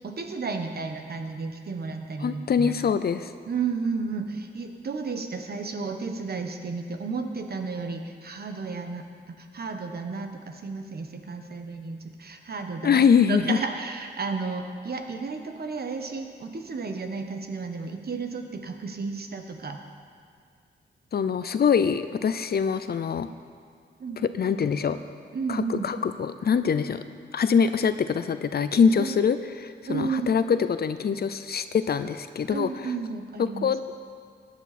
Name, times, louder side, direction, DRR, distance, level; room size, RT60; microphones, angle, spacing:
voice 1, 0.0-2.7 3.5-9.0 9.4-19.8 24.0-24.2 25.3-25.9 29.0-29.2 29.9-30.4 32.5-33.7, right 4 dB, 55° right, 5 dB, 1.3 m, -33 dB
voice 2, 2.2-3.3 12.8-13.6 21.1-23.3 24.3-25.0 25.5-27.0 27.3-32.9 33.6-33.9, left 6 dB, 60° left, 11 dB, 0.6 m, -24 dB
17.0 x 10.5 x 4.3 m, 2.2 s
cardioid pair, 80°, 19 cm